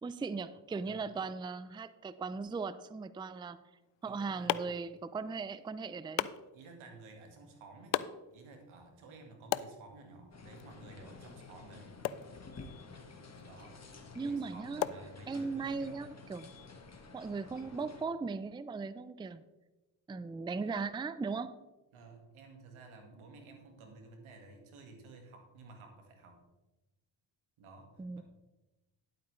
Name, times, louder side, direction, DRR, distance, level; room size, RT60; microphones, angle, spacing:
voice 1, 0.0-3.6 4.0-6.3 14.1-14.9 15.3-16.5 17.1-19.4 20.1-21.6 28.0-28.2, right 4 dB, 10° right, 14 dB, 0.4 m, -38 dB
sound 1, 3.8-15.7, left 13 dB, 65° left, 0.5 m, -42 dB
voice 2, 4.0-4.6 6.5-8.0 8.3-12.0 13.4-13.8 14.3-16.1 21.9-26.4 27.6-28.2, right 3 dB, 90° right, 3 dB, 1.9 m, -53 dB
sound 2, 10.3-18.0, left 3 dB, 35° left, 1.6 m, -52 dB
11.0 x 8.5 x 3.2 m, 1.1 s
supercardioid pair, 55°, 47 cm